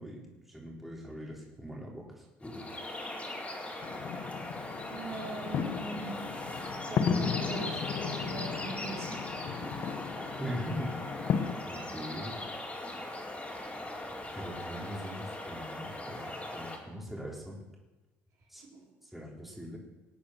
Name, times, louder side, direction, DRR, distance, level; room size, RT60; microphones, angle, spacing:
voice 1, 0.0-2.7 10.4-11.4 11.7-12.4 14.3-17.6 18.5-18.7 19.0-19.8, equal, 5° right, -2 dB, 3.8 m, -41 dB
sound 1, 2.4-16.8, left 1 dB, 20° left, 4.1 m, -40 dB
sound 2, 3.8-11.5, left 7 dB, 55° left, 1.1 m, -35 dB
voice 2, 4.9-6.3 6.9-9.3 9.6-9.8 18.6-18.9, right 4 dB, 55° right, -2 dB, 5.1 m, -42 dB
19.0 x 8.6 x 6.6 m, 1.1 s
supercardioid pair, 80°, 6 cm